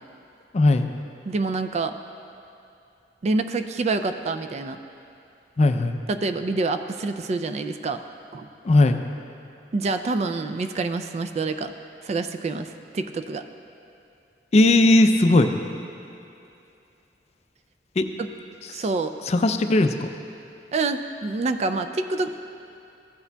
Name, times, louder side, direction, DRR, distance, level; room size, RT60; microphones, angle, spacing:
voice 1, 0.5-0.9 5.6-6.0 8.6-9.0 14.5-15.5 18.0-18.1 19.3-20.1, left 2 dB, 40° left, 7 dB, 0.4 m, -18 dB
voice 2, 1.3-2.0 3.2-4.8 6.1-8.0 8.3-8.5 9.7-11.7 12.0-13.4 18.7-19.2 20.7-22.4, right 3 dB, 40° right, 9 dB, 0.3 m, -27 dB
15.0 x 8.2 x 2.2 m, 2.7 s
head